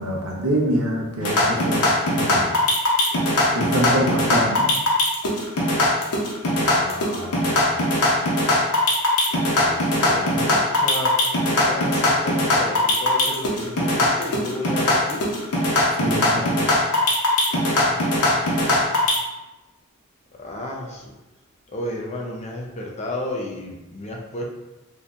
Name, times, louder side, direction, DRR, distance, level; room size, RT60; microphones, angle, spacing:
voice 1, 0.0-2.5 3.5-4.7 9.9-10.1 16.0-16.6, right 1 dB, 85° right, -1 dB, 0.7 m, -25 dB
sound 1, 1.2-19.2, left 1 dB, 85° left, 0.8 m, -20 dB
voice 2, 6.5-7.9 9.6-11.1 11.5-15.2 17.7-18.4 20.4-21.1 21.7-24.4, left 1 dB, 30° left, -1 dB, 0.5 m, -33 dB
3.9 x 2.7 x 2.4 m, 1.0 s
head